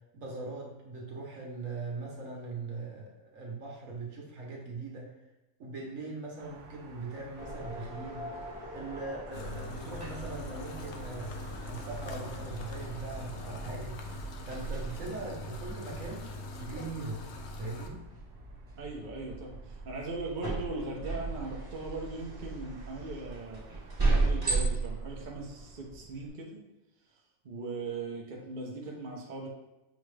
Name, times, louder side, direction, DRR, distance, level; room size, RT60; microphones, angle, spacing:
voice 1, 0.1-5.1 5.6-8.3 8.7-14.0 14.4-16.3 16.6-17.2 17.6-18.0, right 3 dB, 60° right, -2 dB, 1.4 m, -40 dB
sound 1, 6.4-25.9, right 1 dB, 90° right, 1.1 m, -56 dB
sound 2, 7.4-26.3, right 3 dB, 15° right, 1.0 m, -37 dB
sound 3, 9.3-17.9, left 3 dB, 65° left, 0.7 m, -43 dB
voice 2, 18.8-23.7 24.1-26.6 27.1-29.5, right 3 dB, 45° right, -1 dB, 0.7 m, -39 dB
6.3 x 2.4 x 3.2 m, 1.0 s
omnidirectional pair, 1.6 m